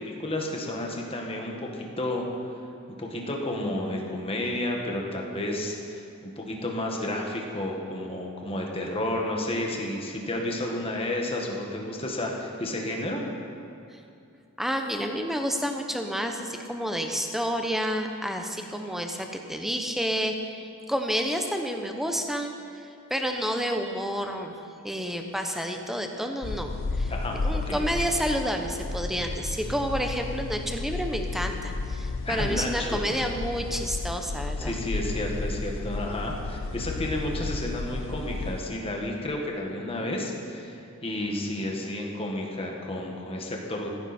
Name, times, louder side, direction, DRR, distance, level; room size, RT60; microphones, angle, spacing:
voice 1, 0.0-2.2 3.0-13.2 27.1-27.8 32.2-33.0 34.6-43.9, left 1 dB, 25° left, 0 dB, 1.7 m, -31 dB
voice 2, 14.6-22.5 23.1-24.5 24.8-27.1 27.4-34.8, equal, ahead, 4 dB, 1.0 m, -30 dB
Spooky Drone, 26.4-38.6, left 3 dB, 60° left, 0.6 m, -32 dB
15.0 x 15.0 x 4.4 m, 2.6 s
head